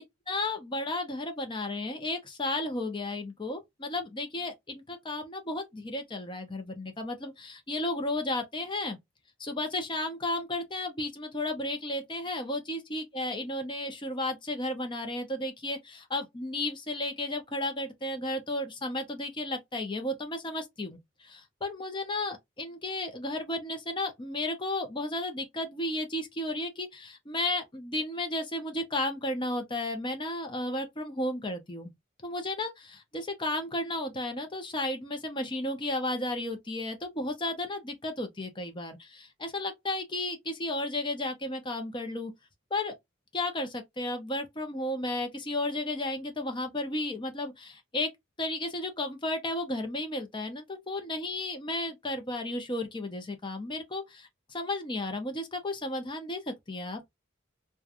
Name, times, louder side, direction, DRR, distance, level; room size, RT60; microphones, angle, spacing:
voice 1, 0.3-9.0 9.4-31.9 32.2-42.3 42.7-42.9 43.3-48.1 48.4-57.0, left 1 dB, 25° left, 0.7 m, -33 dB
3.1 x 2.3 x 2.4 m
head